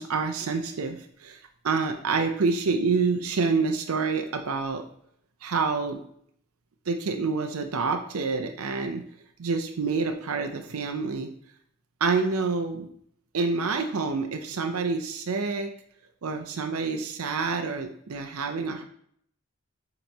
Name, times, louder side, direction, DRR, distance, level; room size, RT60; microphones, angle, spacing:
voice 1, 0.0-1.4 1.6-4.8 5.4-6.0 6.9-9.0 9.4-11.3 12.0-12.9 13.3-15.7 16.2-18.8, right 4 dB, 80° right, 5 dB, 0.6 m, -27 dB
7.7 x 3.0 x 4.0 m, 0.66 s
head